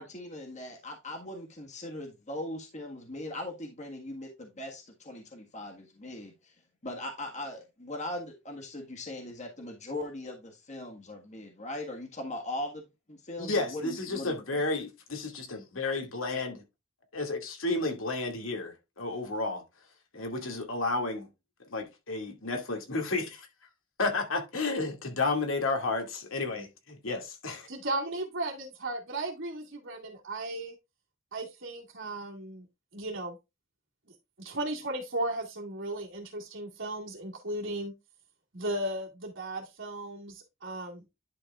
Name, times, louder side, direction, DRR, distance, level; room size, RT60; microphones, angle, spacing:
voice 1, 0.0-6.5 6.8-14.6, left 1 dB, 35° left, 1.6 m, -40 dB
voice 2, 13.4-16.6 17.1-19.6 20.1-21.3 21.7-23.5 24.0-27.7, left 3 dB, 90° left, 2.3 m, -32 dB
voice 3, 27.7-30.8 31.3-32.6 32.9-33.4 34.4-37.9 38.5-41.0, right 1 dB, 65° right, 2.2 m, -35 dB
10.5 x 5.9 x 2.4 m
head